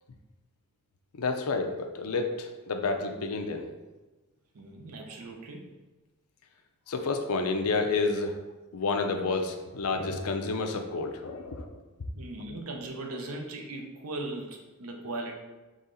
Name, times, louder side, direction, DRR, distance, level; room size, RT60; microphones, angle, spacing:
voice 1, 1.1-3.7 6.9-8.4 8.7-11.8, left 3 dB, 85° left, 5 dB, 0.5 m, -30 dB
voice 2, 4.5-5.6 12.1-15.3, right 2 dB, 85° right, 2 dB, 0.7 m, -38 dB
4.2 x 3.1 x 3.8 m, 1.1 s
head